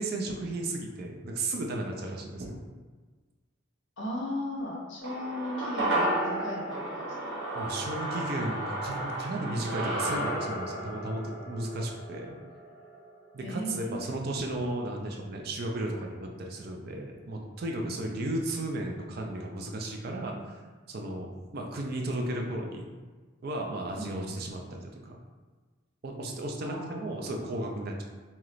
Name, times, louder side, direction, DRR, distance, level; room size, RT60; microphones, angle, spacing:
voice 1, 0.0-2.6 7.5-12.4 13.3-20.6 20.9-22.9 23.4-25.2 26.0-28.0, right 1 dB, 50° right, 1 dB, 0.4 m, -34 dB
voice 2, 4.0-7.3 13.4-14.2 24.0-24.3 26.6-27.8, left 1 dB, 65° left, -4 dB, 0.8 m, -37 dB
sound 1, 5.0-13.5 13.8-13.9, right 1 dB, 65° right, 0.8 m, -33 dB
3.1 x 2.9 x 2.4 m, 1.3 s
head